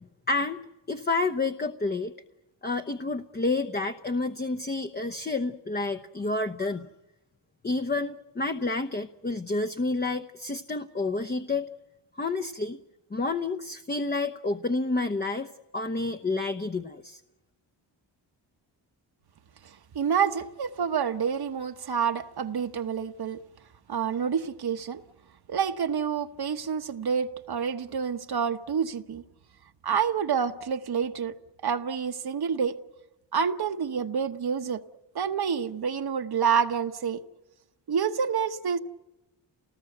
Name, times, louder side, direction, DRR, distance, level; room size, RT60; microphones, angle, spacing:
voice 1, 0.3-0.6 0.9-2.1 2.6-6.9 7.6-11.7 12.2-12.8 13.1-15.5 15.7-17.2, left 3 dB, 20° left, 1.0 m, -29 dB
voice 2, 19.6-23.4 23.9-25.0 25.5-29.2 29.8-31.3 31.6-32.8 33.3-34.8 35.1-37.2 37.9-38.8, right 7 dB, 55° right, 1.2 m, -28 dB
28.5 x 19.5 x 8.0 m
cardioid pair, 100°, 46 cm